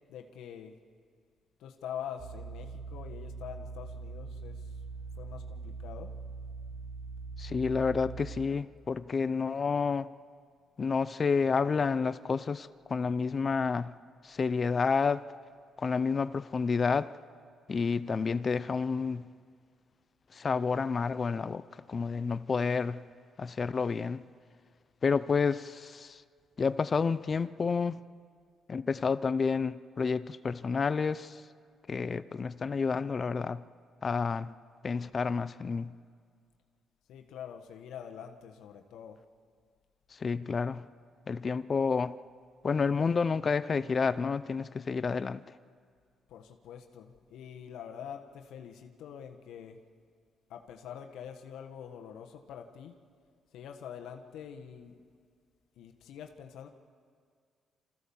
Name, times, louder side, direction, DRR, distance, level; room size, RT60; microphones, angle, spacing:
voice 1, 0.1-0.8 1.6-4.8 5.1-6.1 37.1-39.2 46.3-49.8 50.5-52.9 53.5-55.0 55.8-56.7, left 8 dB, 85° left, 3 dB, 1.4 m, -45 dB
sound 1, 2.2-8.5, right 4 dB, 55° right, 1.7 m, -42 dB
voice 2, 7.4-10.1 10.8-13.9 14.2-15.2 15.8-17.1 17.7-19.2 20.3-21.6 21.9-23.0 23.4-24.2 25.0-26.2 26.6-28.0 28.7-31.4 31.9-33.6 34.0-34.5 34.8-35.9 40.1-40.8 41.3-42.2 42.6-45.4, left 5 dB, 40° left, 15 dB, 0.6 m, -29 dB
27.0 x 15.0 x 7.2 m, 2.1 s
cardioid pair, 90°, 0 cm